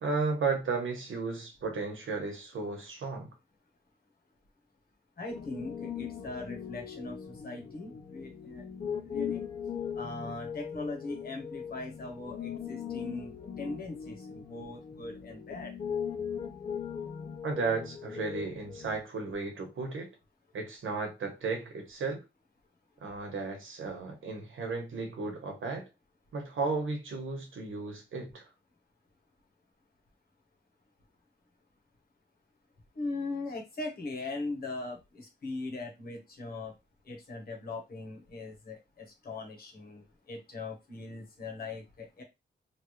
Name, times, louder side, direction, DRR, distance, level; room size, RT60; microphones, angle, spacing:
voice 1, 0.0-3.3 17.4-20.1 20.5-22.2 23.0-25.9 26.3-28.4, right 4 dB, 85° right, 1.1 m, -34 dB
voice 2, 5.2-8.7 9.0-9.4 9.9-15.7 32.9-36.7 37.0-42.2, left 3 dB, 50° left, 1.0 m, -40 dB
Piano, 5.3-19.0, left 7 dB, 30° left, 0.4 m, -39 dB
3.2 x 2.5 x 3.1 m
wide cardioid pair, 180°, 20 cm